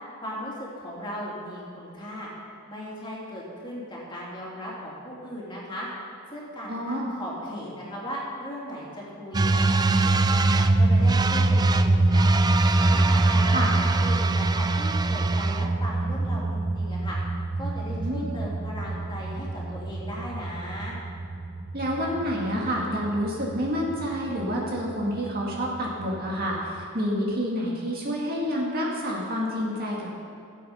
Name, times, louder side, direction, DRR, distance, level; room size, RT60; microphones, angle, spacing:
voice 1, 0.2-2.3 2.7-5.9 6.3-10.2 10.5-12.4 12.7-17.2 17.6-21.0, equal, 20° left, -6 dB, 3.1 m, -37 dB
voice 2, 6.7-7.1 13.5-13.7 18.0-18.3 21.7-30.2, equal, 45° right, -3 dB, 2.1 m, -28 dB
sound 1, 9.3-26.8, right 2 dB, 20° right, 0.3 m, -24 dB
16.0 x 8.2 x 5.6 m, 2.6 s
head